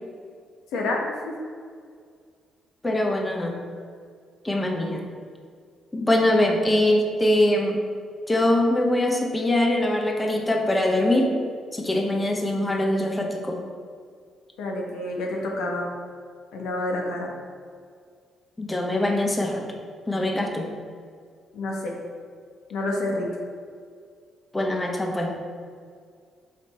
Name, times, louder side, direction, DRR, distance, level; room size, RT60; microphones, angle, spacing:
voice 1, 0.7-1.3 14.6-15.9 16.5-17.3 21.5-21.9 22.7-23.3, left 2 dB, 90° left, 0 dB, 1.2 m, -28 dB
voice 2, 2.8-3.6 4.4-5.1 5.9-7.8 8.3-11.3 11.7-13.6 18.6-19.6 20.1-20.7 24.5-25.5, left 1 dB, 15° left, 1 dB, 1.0 m, -23 dB
5.8 x 5.2 x 4.2 m, 2.1 s
cardioid pair, 90°, 0 cm